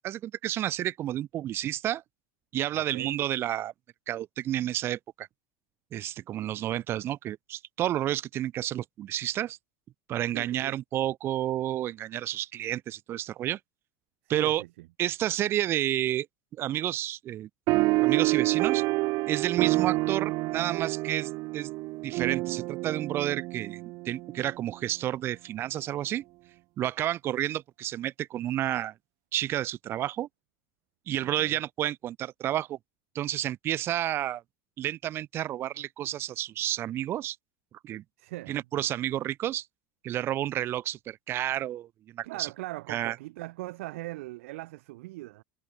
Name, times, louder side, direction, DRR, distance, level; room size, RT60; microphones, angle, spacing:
voice 1, 0.0-2.0 2.5-3.7 4.1-5.3 5.9-9.6 10.1-13.6 14.3-14.6 15.0-16.3 16.6-17.5 18.0-18.8 19.3-21.7 22.0-26.2 26.8-28.9 29.3-30.3 31.1-32.8 33.1-34.4 34.8-37.4 37.8-38.0 38.5-39.7 40.0-41.9 42.1-42.5 42.9-43.1, right 12 dB, 35° right, 1.0 m, -30 dB
voice 2, 2.7-3.1 10.3-10.8 14.2-14.9 19.8-19.9 31.2-31.6 38.2-38.6 42.2-45.4, right 19 dB, 75° right, 5.9 m, -40 dB
sound 1, 17.7-24.5, right 22 dB, 50° right, 1.8 m, -28 dB
supercardioid pair, 150°, 7 cm